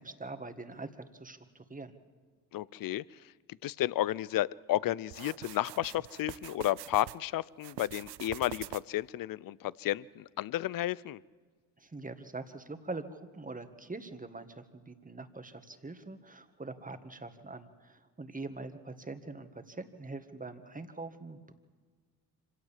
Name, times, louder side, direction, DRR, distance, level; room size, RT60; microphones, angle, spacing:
voice 1, 0.0-2.0 11.8-21.5, right 3 dB, 20° right, 8 dB, 1.9 m, -43 dB
voice 2, 2.5-3.0 3.6-11.2, left 14 dB, 60° left, 22 dB, 0.6 m, -32 dB
sound 1, 5.1-7.2 7.6-9.1, right 17 dB, 75° right, 0.6 m, -45 dB
25.5 x 17.0 x 7.5 m, 1.5 s
supercardioid pair, 55°, 39 cm